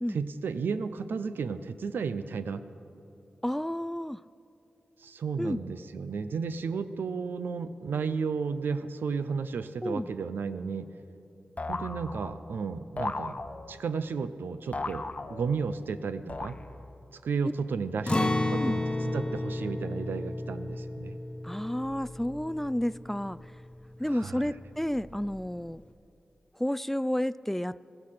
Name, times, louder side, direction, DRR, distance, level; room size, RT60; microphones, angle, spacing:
voice 1, 0.1-2.6 5.0-10.9 11.7-13.4 13.7-16.6 17.1-18.8 19.1-21.2 24.1-24.5, right 5 dB, 90° right, 11 dB, 0.6 m, -33 dB
voice 2, 3.4-4.2 5.4-5.6 9.8-10.1 18.6-18.7 21.4-23.4 24.0-25.8 26.6-27.8, left 1 dB, 5° left, 18 dB, 0.3 m, -31 dB
sound 1, 11.6-12.5 13.0-13.9 14.7-15.8 16.3-17.0, left 3 dB, 45° left, 0.7 m, -37 dB
Acoustic guitar, 18.1-24.0 24.3-24.4 24.9-25.4, left 1 dB, 25° left, 1.1 m, -32 dB
15.0 x 14.5 x 5.8 m, 2.8 s
cardioid pair, 40°, 3 cm